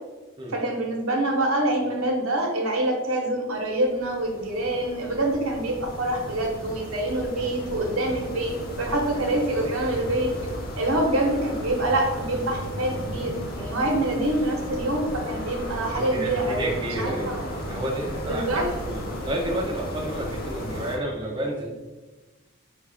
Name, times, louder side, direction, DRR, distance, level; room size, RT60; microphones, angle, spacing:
voice 1, 0.5-10.3 10.8-16.6 17.0-17.5 18.2-18.7, right 1 dB, 85° right, 1 dB, 0.9 m, -26 dB
sound 1, 3.5-21.0, equal, 45° left, 0.6 m, -35 dB
voice 2, 15.9-17.4 17.7-21.7, right 1 dB, 20° right, -3 dB, 0.4 m, -31 dB
5.5 x 2.3 x 3.4 m, 1.2 s
head